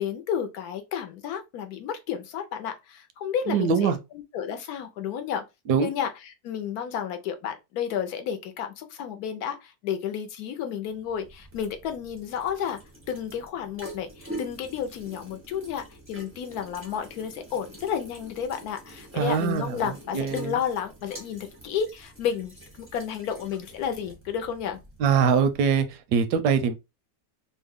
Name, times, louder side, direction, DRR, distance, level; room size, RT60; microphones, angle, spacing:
voice 1, 0.0-5.4 5.8-12.8 13.1-24.8, left 8 dB, 75° left, 1.0 m, -32 dB
voice 2, 3.5-4.0 5.7-5.9 19.1-19.8 20.1-20.6 25.0-25.9 26.1-26.7, right 6 dB, 80° right, 1.1 m, -22 dB
sound 1, 10.9-25.9, right 1 dB, 15° right, 0.5 m, -46 dB
3.2 x 2.1 x 3.4 m
omnidirectional pair, 1.8 m